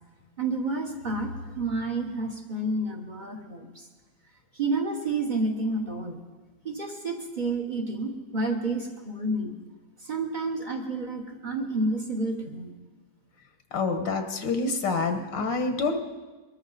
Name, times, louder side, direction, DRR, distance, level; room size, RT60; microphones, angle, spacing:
voice 1, 0.4-3.9 4.5-6.2 6.6-9.5 10.0-12.7, right 2 dB, 30° right, 2 dB, 1.3 m, -30 dB
voice 2, 13.7-16.0, left 4 dB, 80° left, 6 dB, 1.8 m, -27 dB
23.0 x 13.5 x 4.1 m, 1.3 s
omnidirectional pair, 2.0 m